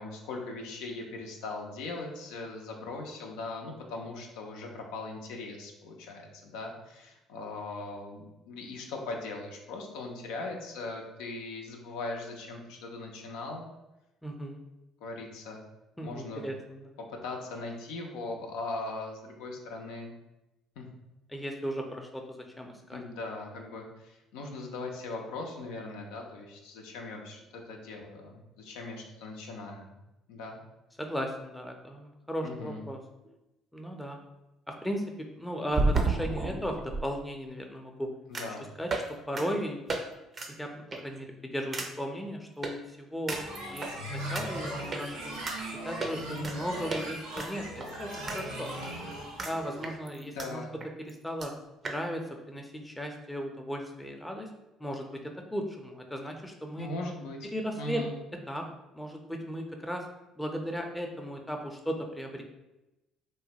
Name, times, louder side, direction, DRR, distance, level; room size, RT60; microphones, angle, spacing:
voice 1, 0.0-13.7 15.0-15.6 16.0-16.4 17.1-20.2 20.8-20.9 22.9-30.0 30.3-30.6 32.4-32.8 38.3-38.6 50.2-50.7 56.8-58.2, left 3 dB, 75° left, 1 dB, 0.5 m, -39 dB
voice 2, 14.2-14.6 16.0-16.9 21.3-23.0 31.0-33.0 33.7-34.2 34.7-35.0 35.4-38.1 38.8-39.0 39.3-39.9 40.6-40.7 41.0-43.4 43.7-45.4 45.8-48.7 49.4-50.6 51.1-51.5 51.8-52.2 52.5-54.5 54.8-55.2 55.5-56.9 57.5-58.0 58.5-58.6 58.9-60.0 60.4-62.4, equal, 5° left, 2 dB, 0.5 m, -36 dB
sound 1, 33.2-33.3 35.7-37.0 38.3-38.6 38.9-39.1 39.4-39.5 39.9-40.0 40.3-40.5 40.9-41.2 41.7-41.9 42.6-42.7 43.3-43.9 44.3-44.4 44.9-45.0 45.5-45.6 46.0-46.6 46.9-47.0 47.4-48.4 48.7-48.8 49.4-49.5 49.8-50.5 50.8-50.9 51.1-51.2 51.4-51.5 51.8-52.0, right 3 dB, 40° right, 0.5 m, -31 dB
sound 2, 43.3-49.9, right 1 dB, 90° right, 0.8 m, -39 dB
3.0 x 2.1 x 2.8 m, 0.95 s
hypercardioid pair, 60°, 0 cm